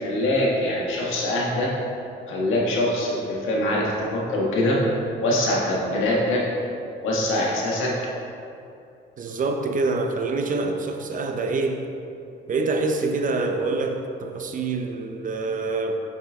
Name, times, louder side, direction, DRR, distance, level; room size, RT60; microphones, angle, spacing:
voice 1, 0.0-1.7 2.3-4.8 5.2-6.5 7.0-7.9, left 1 dB, 85° left, -4 dB, 1.3 m, -23 dB
voice 2, 9.2-11.8 12.5-16.0, right 3 dB, 40° right, 4 dB, 0.6 m, -26 dB
5.7 x 5.1 x 3.5 m, 2.7 s
cardioid pair, 90°, 20 cm